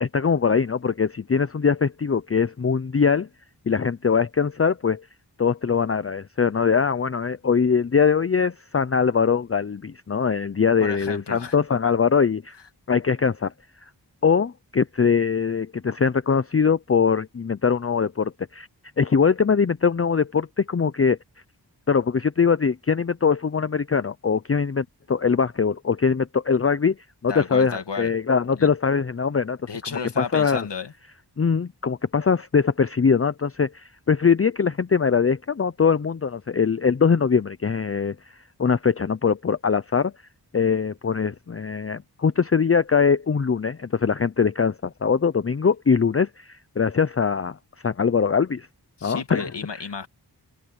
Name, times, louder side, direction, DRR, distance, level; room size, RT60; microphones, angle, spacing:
voice 1, 0.0-3.3 3.7-5.1 5.4-12.5 12.9-13.5 13.8-13.9 14.2-18.7 19.0-21.2 21.9-27.0 27.2-29.6 30.2-30.7 31.4-40.1 40.5-47.6 47.8-48.7 49.0-49.8, left 6 dB, 35° left, 0.7 m, -22 dB
voice 2, 10.8-11.6 27.3-28.1 28.6-28.7 29.6-30.9 49.0-50.1, left 5 dB, 90° left, 2.4 m, -32 dB
cardioid pair, 50°, 41 cm